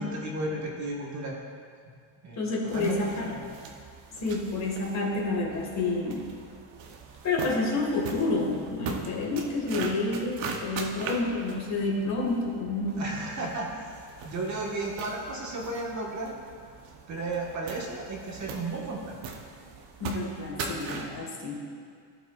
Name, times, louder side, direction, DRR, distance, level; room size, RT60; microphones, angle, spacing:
voice 1, 0.0-1.4 2.2-3.5 13.0-13.9 14.2-16.4 17.1-19.2, right 2 dB, 35° right, -2 dB, 1.6 m, -34 dB
voice 2, 2.4-3.3 4.2-6.3 7.2-13.1 20.0-21.6, left 2 dB, 35° left, -2 dB, 1.9 m, -29 dB
sound 1, 2.7-21.2, right 4 dB, 65° right, 1.1 m, -41 dB
16.5 x 6.0 x 2.5 m, 2.1 s
cardioid pair, 135°, 48 cm